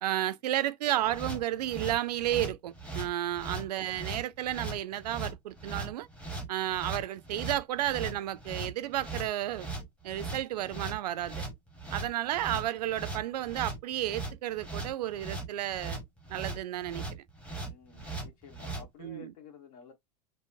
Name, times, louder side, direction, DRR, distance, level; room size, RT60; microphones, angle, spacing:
voice 1, 0.0-6.1 6.5-9.7 10.0-11.4 11.9-16.0 16.3-17.2 19.0-19.3, right 13 dB, 80° right, 0.4 m, -32 dB
sound 1, 1.1-18.9, right 3 dB, 5° left, 0.9 m, -39 dB
voice 2, 17.6-19.9, left 6 dB, 65° left, 1.2 m, -53 dB
3.1 x 2.0 x 2.5 m
hypercardioid pair, 100°, 20 cm